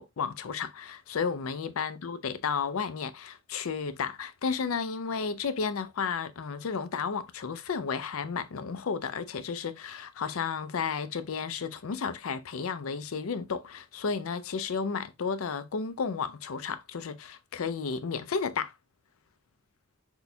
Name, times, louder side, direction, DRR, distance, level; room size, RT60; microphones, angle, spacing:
voice 1, 0.0-18.7, left 5 dB, 70° left, 0.5 m, -33 dB
6.2 x 2.2 x 2.7 m
head